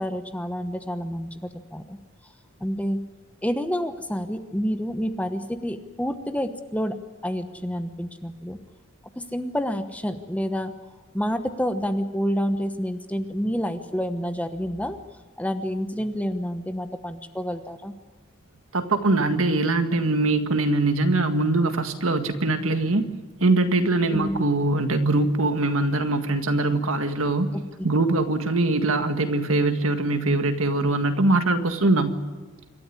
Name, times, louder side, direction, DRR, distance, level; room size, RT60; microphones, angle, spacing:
voice 1, 0.0-2.0 2.6-3.0 3.4-7.0 7.2-8.6 9.1-10.7 11.1-15.0 15.4-17.9 24.1-24.4 27.5-27.9, equal, 5° left, 8 dB, 1.0 m, -28 dB
voice 2, 18.7-23.1 23.4-27.5 27.8-32.2, right 2 dB, 65° right, 7 dB, 1.8 m, -22 dB
27.0 x 13.5 x 9.9 m, 1.3 s
head